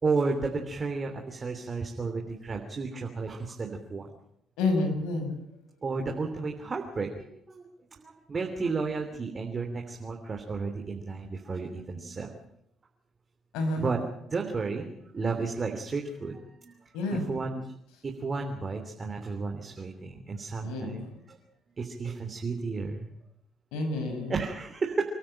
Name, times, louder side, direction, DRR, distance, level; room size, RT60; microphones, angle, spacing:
voice 1, 0.0-4.1 5.8-7.6 8.0-12.3 13.8-16.7 17.1-17.6 18.0-21.4 21.8-23.1 24.3-25.0, right 4 dB, 35° right, 3 dB, 3.2 m, -32 dB
voice 2, 4.6-5.3 13.5-13.8 16.9-17.2 20.6-21.1 23.7-24.3, left 2 dB, 80° left, 5 dB, 6.0 m, -29 dB
29.0 x 13.0 x 8.9 m, 0.77 s
supercardioid pair, 65°, 0 cm